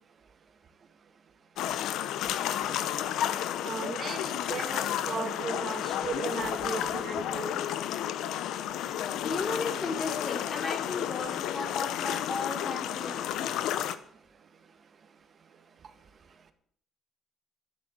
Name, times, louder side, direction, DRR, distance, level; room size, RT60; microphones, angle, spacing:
sound 1, 1.6-14.0, left 11 dB, 80° left, 0.9 m, -32 dB
voice 1, 3.6-7.5, right 6 dB, 45° right, 9 dB, 1.8 m, -36 dB
voice 2, 8.7-13.3, left 3 dB, 40° left, 5 dB, 3.1 m, -35 dB
13.0 x 7.0 x 9.7 m, 0.64 s
cardioid pair, 95°, 0 cm